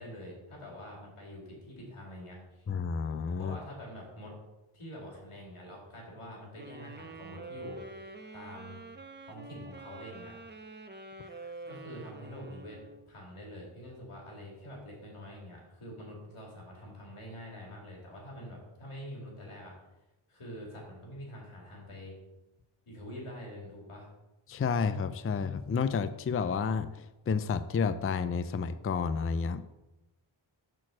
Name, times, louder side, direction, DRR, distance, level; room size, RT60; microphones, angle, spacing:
voice 1, 0.0-2.6 3.4-4.3 4.7-8.8 9.3-10.3 11.7-12.8 13.1-19.7 20.3-22.2 22.9-24.1, equal, 85° left, -2 dB, 2.4 m, -46 dB
voice 2, 2.7-3.6 24.5-29.6, left 5 dB, 30° left, 12 dB, 0.4 m, -30 dB
sound 1, 6.6-13.1, right 3 dB, 20° right, 0.7 m, -47 dB
6.3 x 4.4 x 6.1 m, 1.0 s
cardioid pair, 55°, 49 cm